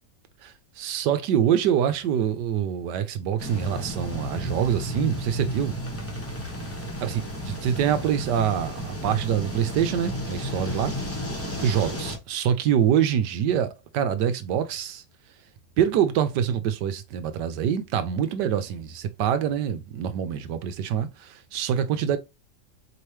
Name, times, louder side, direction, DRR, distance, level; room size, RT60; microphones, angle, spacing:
voice 1, 0.4-5.8 7.0-10.9 11.6-15.0 15.8-22.2, right 9 dB, 75° right, 1.3 m, -25 dB
sound 1, 3.4-12.2, equal, 10° left, 0.7 m, -33 dB
4.5 x 2.9 x 3.2 m
omnidirectional pair, 1.9 m